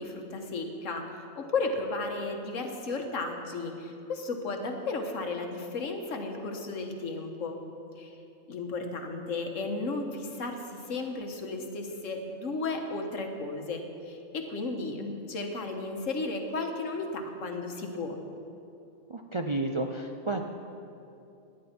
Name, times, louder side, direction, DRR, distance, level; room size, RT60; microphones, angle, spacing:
voice 1, 0.0-7.6 8.0-8.2 8.5-18.1, left 3 dB, 80° left, 4 dB, 1.6 m, -34 dB
voice 2, 19.1-20.4, right 2 dB, 45° right, 3 dB, 0.4 m, -31 dB
17.5 x 10.0 x 4.4 m, 2.8 s
omnidirectional pair, 1.3 m